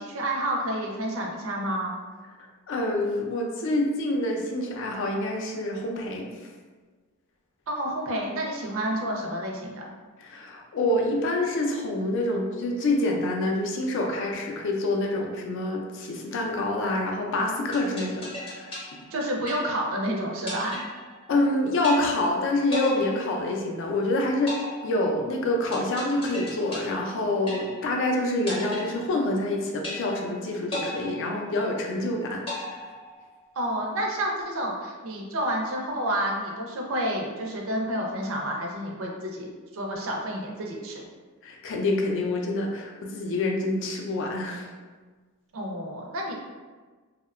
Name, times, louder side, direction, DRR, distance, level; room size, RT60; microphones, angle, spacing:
voice 1, 0.0-2.0 7.7-9.8 19.1-20.8 33.6-41.1 45.5-46.3, right 1 dB, 65° right, 0 dB, 0.5 m, -29 dB
voice 2, 2.7-6.3 10.2-18.8 21.3-32.9 41.4-44.7, left 2 dB, 60° left, 1 dB, 0.4 m, -27 dB
sound 1, 17.7-20.0 20.5-21.5 21.8-22.4 22.7-24.0 24.5-28.0 28.5-29.5 29.8-30.4 30.7-32.0 32.5-33.5, left 1 dB, 25° left, 0.7 m, -37 dB
2.7 x 2.0 x 2.4 m, 1.4 s
head